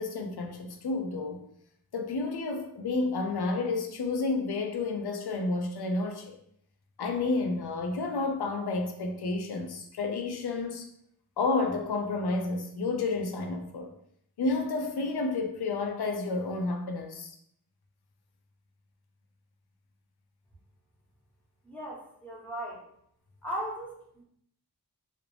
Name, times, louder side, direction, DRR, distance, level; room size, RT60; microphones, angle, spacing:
voice 1, 0.0-1.4 1.9-6.4 7.0-10.9 11.4-13.9 14.4-17.3, left 3 dB, 75° left, 0.5 m, -30 dB
voice 2, 21.6-22.8 23.4-24.0, equal, 5° left, 1.0 m, -37 dB
2.5 x 2.1 x 3.1 m
wide cardioid pair, 55°, 39 cm